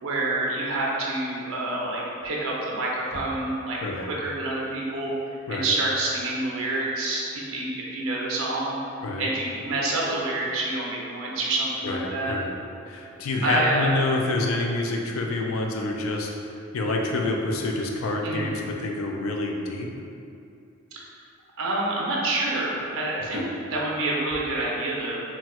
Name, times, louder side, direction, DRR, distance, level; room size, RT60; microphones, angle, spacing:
voice 1, 0.0-5.1 5.5-8.8 9.2-12.3 13.4-14.0 18.2-18.5 21.6-23.4 23.7-25.2, right 2 dB, 80° right, -4 dB, 0.6 m, -27 dB
voice 2, 11.8-12.5 12.8-19.9 23.3-23.5, left 2 dB, 80° left, 1 dB, 0.4 m, -27 dB
4.1 x 2.2 x 2.3 m, 2.6 s
head